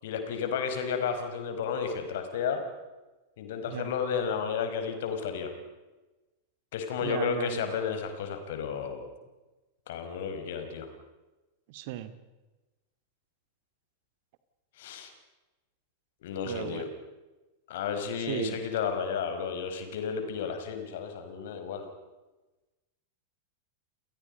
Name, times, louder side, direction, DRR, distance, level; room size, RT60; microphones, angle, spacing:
voice 1, 0.0-2.6 3.4-5.5 6.7-9.0 9.9-10.9 14.8-15.1 16.2-16.9 17.7-21.9, left 6 dB, 55° left, 7 dB, 5.0 m, -32 dB
voice 2, 7.0-7.7 11.7-12.1 16.4-16.8 18.2-18.6 20.4-20.5, right 13 dB, 50° right, 12 dB, 2.2 m, -36 dB
30.0 x 28.0 x 5.4 m, 1.1 s
figure-of-eight pair, 90°, 0 cm